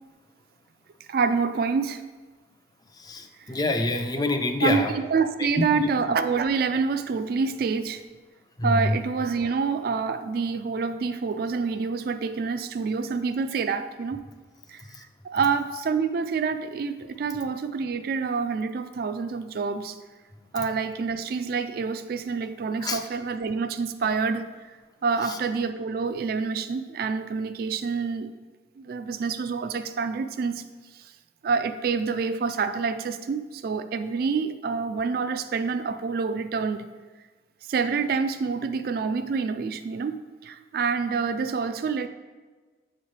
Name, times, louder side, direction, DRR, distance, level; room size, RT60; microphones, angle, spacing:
voice 1, 1.1-2.0 4.6-4.8 5.1-8.0 8.6-14.2 14.7-14.8 15.2-20.0 20.5-24.5 25.0-28.3 28.8-30.6 30.9-31.1 31.4-36.8 37.7-42.1, right 5 dB, 55° right, 10 dB, 0.3 m, -27 dB
voice 2, 2.9-4.9 5.4-5.9 8.6-9.0 14.9-15.0 20.6-20.7 22.8-23.0 25.2-25.4, left 2 dB, 20° left, 6 dB, 0.4 m, -27 dB
7.4 x 4.3 x 3.2 m, 1.3 s
head